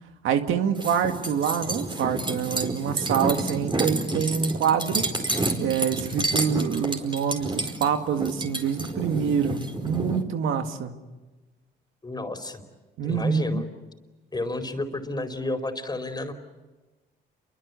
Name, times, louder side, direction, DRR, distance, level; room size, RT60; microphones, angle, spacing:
voice 1, 0.2-5.0 5.6-10.9 13.0-13.6, right 7 dB, 85° right, 6 dB, 2.1 m, -26 dB
sound 1, 0.8-10.2, right 2 dB, 25° right, 4.8 m, -29 dB
voice 2, 12.0-12.6 13.0-13.6 14.3-16.3, left 2 dB, 20° left, 7 dB, 4.4 m, -31 dB
29.5 x 23.5 x 8.3 m, 1.2 s
cardioid pair, 90°, 20 cm